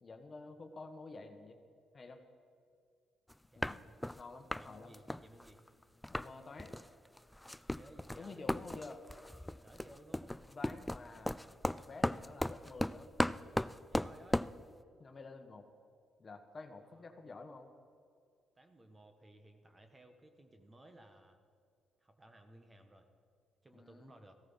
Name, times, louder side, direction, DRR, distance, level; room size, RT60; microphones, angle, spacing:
voice 1, 0.0-1.6 1.9-2.2 3.6-3.8 4.1-4.9 6.1-6.8 8.1-9.0 10.5-11.4 11.8-13.1 15.0-15.7 16.2-17.7 23.7-24.1, left 3 dB, 35° left, 6 dB, 1.4 m, -50 dB
sound 1, 3.3-3.4 3.6-4.2 4.5-4.7 4.9-6.3 6.6-6.9 7.2-14.6, left 1 dB, 5° left, 0.3 m, -36 dB
voice 2, 3.5-4.0 4.6-5.6 7.7-8.6 9.6-10.4 13.9-14.4 16.9-17.0 18.6-21.4 22.0-23.1 23.6-24.4, right 1 dB, 20° right, 6 dB, 1.5 m, -59 dB
15.5 x 13.5 x 5.7 m, 2.3 s
cardioid pair, 90°, 0 cm